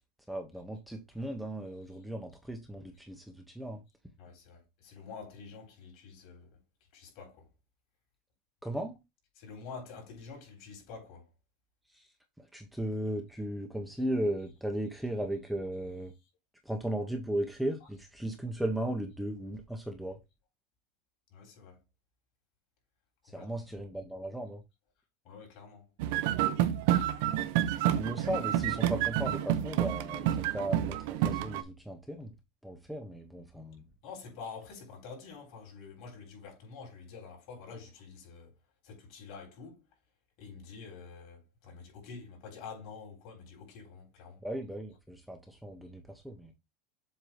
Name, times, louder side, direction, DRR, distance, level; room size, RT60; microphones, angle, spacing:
voice 1, 0.3-3.8 8.6-9.0 11.9-12.1 12.4-16.1 16.6-20.2 23.2-24.6 28.0-32.3 32.6-33.8 44.4-46.5, right 1 dB, ahead, 0.7 m, -36 dB
voice 2, 4.2-6.6 6.9-7.5 9.3-11.3 21.3-21.8 23.2-23.7 25.2-25.9 27.7-28.1 34.0-38.6 38.8-39.8 40.4-44.4, left 5 dB, 50° left, 3.3 m, -48 dB
sound 1, 26.0-31.6, right 12 dB, 65° right, 0.6 m, -29 dB
7.6 x 2.7 x 4.9 m
supercardioid pair, 160°, 0 cm